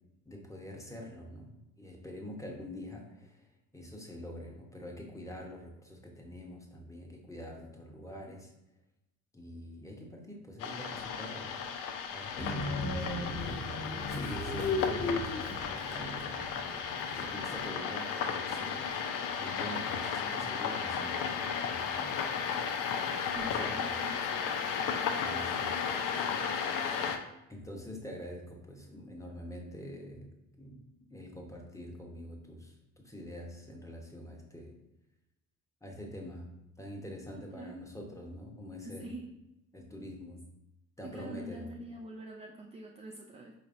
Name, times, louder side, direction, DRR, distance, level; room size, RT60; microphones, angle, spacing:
voice 1, 0.2-3.5 3.7-8.5 9.3-11.6 12.1-13.6 14.1-16.7 17.2-18.9 19.4-22.1 23.4-24.0 25.2-25.7 27.5-30.8 31.1-34.8 35.8-36.5 36.8-39.1 39.7-40.5 41.0-41.7, equal, 10° left, 0 dB, 1.1 m, -45 dB
sound 1, 10.6-27.2, left 6 dB, 60° left, 0.6 m, -34 dB
Train, 12.4-17.7, left 2 dB, 35° left, 1.4 m, -36 dB
voice 2, 23.3-24.2 37.3-37.8 38.8-39.3 41.0-43.5, right 1 dB, 20° right, 2 dB, 0.4 m, -45 dB
4.6 x 3.2 x 2.6 m, 0.89 s
hypercardioid pair, 55°, 37 cm